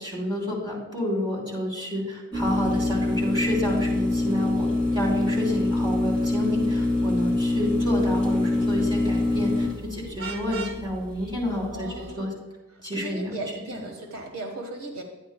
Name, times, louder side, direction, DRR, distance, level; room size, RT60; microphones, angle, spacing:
voice 1, 0.0-4.7 4.9-11.9 12.2-12.3 12.8-13.4 13.7-13.8, left 1 dB, 20° right, -5 dB, 2.9 m, -29 dB
sound 1, 2.3-12.1, left 2 dB, 40° right, 3.0 m, -25 dB
Vehicle horn car horn honking, 10.2-10.8, right 5 dB, 60° right, 0.9 m, -36 dB
voice 2, 11.7-12.3 12.9-15.0, right 2 dB, 90° right, 2 dB, 1.4 m, -36 dB
11.0 x 9.7 x 2.2 m, 1.1 s
head